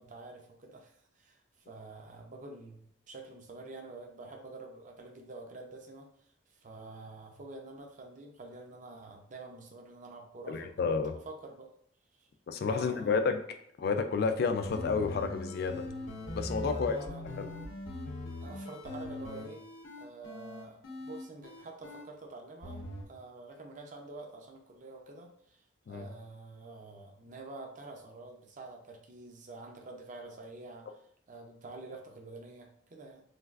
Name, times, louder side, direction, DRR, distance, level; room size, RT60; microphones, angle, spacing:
voice 1, 0.0-11.7 12.1-12.3 12.7-13.3 16.7-17.2 18.4-19.6 20.0-33.2, right 2 dB, 40° right, 2 dB, 0.5 m, -48 dB
voice 2, 10.5-11.1 12.5-13.4 13.8-15.8 16.3-17.0 17.4-17.5 25.9-26.0, left 5 dB, 55° left, 8 dB, 0.3 m, -30 dB
sound 1, 14.5-22.0 22.6-23.0, left 1 dB, 85° left, 0.6 m, -41 dB
3.3 x 2.3 x 2.3 m, 0.67 s
head